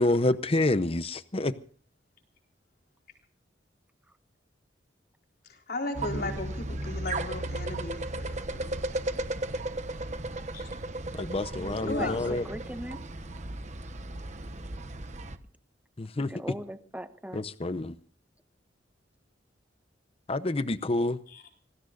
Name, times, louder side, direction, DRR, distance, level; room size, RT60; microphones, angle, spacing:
voice 1, 0.0-1.5 11.1-12.4 16.0-16.3 17.3-17.9 20.3-21.2, left 2 dB, 30° left, 0.7 m, -28 dB
voice 2, 5.4-8.7 10.5-10.7 11.7-12.4 21.3-21.4, left 2 dB, 55° left, 4.1 m, -36 dB
sound 1, 5.9-15.4, right 2 dB, 40° right, 1.1 m, -35 dB
voice 3, 11.6-13.0 16.3-17.4, equal, 10° right, 1.1 m, -39 dB
26.0 x 20.0 x 2.5 m
head